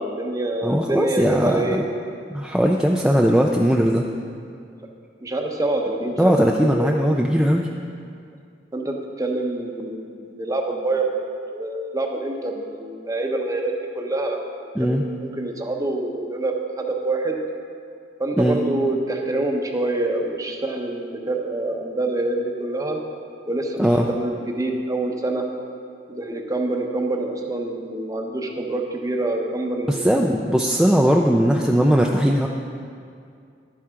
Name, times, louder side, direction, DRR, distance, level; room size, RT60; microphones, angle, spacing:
voice 1, 0.0-1.9 5.2-7.0 8.7-11.2 11.5-14.4 14.8-17.4 18.2-23.0 23.5-25.5 26.1-30.2, right 2 dB, 20° right, 2 dB, 0.9 m, -26 dB
voice 2, 0.6-1.8 2.3-4.1 6.2-7.7 14.8-15.0 18.4-18.6 23.8-24.1 30.0-32.5, equal, 5° right, 0 dB, 0.4 m, -19 dB
11.0 x 10.5 x 3.7 m, 2.3 s
head